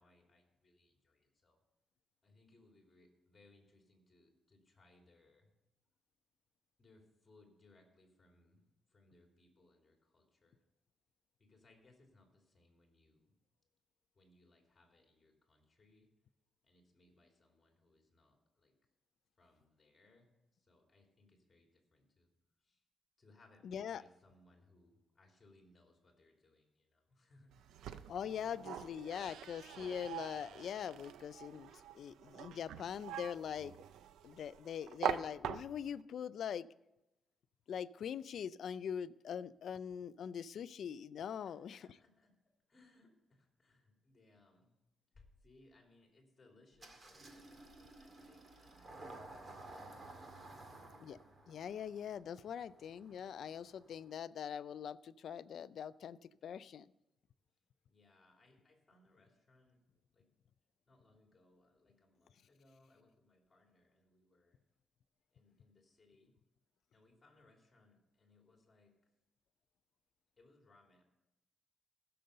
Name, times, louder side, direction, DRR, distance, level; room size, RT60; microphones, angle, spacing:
voice 1, 0.0-1.6 2.2-5.5 6.8-8.6 8.9-10.6 11.4-13.3 14.1-16.1 16.6-18.7 19.4-22.3 22.6-22.8 23.2-27.8 41.4-42.3 42.7-44.7 45.1-51.0 56.5-56.6 57.9-59.8 60.1-60.3 60.9-64.6 65.3-66.3 66.9-68.9 70.4-71.0, left 2 dB, 20° left, 1 dB, 3.1 m, -68 dB
voice 2, 23.6-24.0 28.1-33.7 34.2-36.7 37.7-41.9 51.0-51.2 51.5-56.9, left 8 dB, 55° left, 16 dB, 0.4 m, -43 dB
sound 1, 27.5-36.0, right 9 dB, 90° right, 0.5 m, -44 dB
Engine starting, 46.8-54.1, right 2 dB, 30° right, 2.0 m, -55 dB
15.5 x 6.8 x 6.6 m, 0.93 s
cardioid pair, 145°, 0 cm